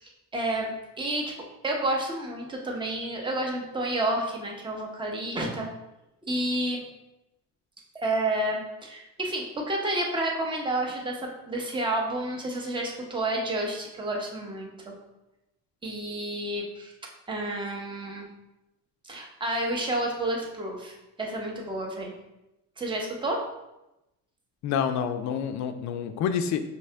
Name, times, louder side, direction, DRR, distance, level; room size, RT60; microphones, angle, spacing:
voice 1, 0.0-1.3 1.6-5.7 6.3-6.8 7.9-15.0 15.8-16.9 17.3-18.3 19.0-20.9 21.2-22.1 22.8-23.4, right 1 dB, 15° right, 0 dB, 0.7 m, -30 dB
voice 2, 24.6-26.6, left 7 dB, 60° left, 9 dB, 0.5 m, -28 dB
5.4 x 2.8 x 3.3 m, 0.93 s
cardioid pair, 155°, 33 cm